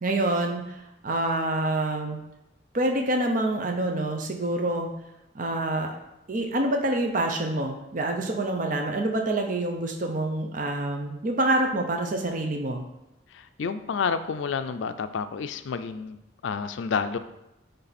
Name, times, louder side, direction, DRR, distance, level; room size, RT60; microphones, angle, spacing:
voice 1, 0.0-2.2 2.7-4.9 5.3-6.0 6.3-12.8, right 1 dB, 45° right, 3 dB, 0.6 m, -27 dB
voice 2, 13.3-16.2 16.4-17.2, left 5 dB, 70° left, 10 dB, 0.4 m, -29 dB
9.9 x 3.3 x 4.1 m, 0.90 s
head